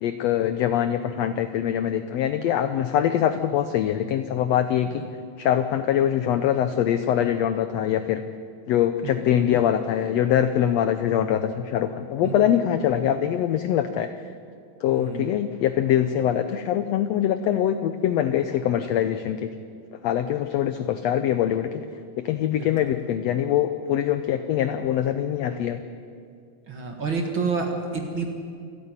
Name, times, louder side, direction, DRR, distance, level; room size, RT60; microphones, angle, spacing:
voice 1, 0.0-5.0 5.4-8.2 8.7-14.1 14.8-19.5 20.0-21.8 22.2-25.8, left 10 dB, 85° left, 10 dB, 1.5 m, -23 dB
voice 2, 14.9-15.5 22.5-23.0 26.7-28.3, right 4 dB, 45° right, 2 dB, 2.0 m, -30 dB
28.0 x 9.7 x 9.7 m, 2.3 s
omnidirectional pair, 3.8 m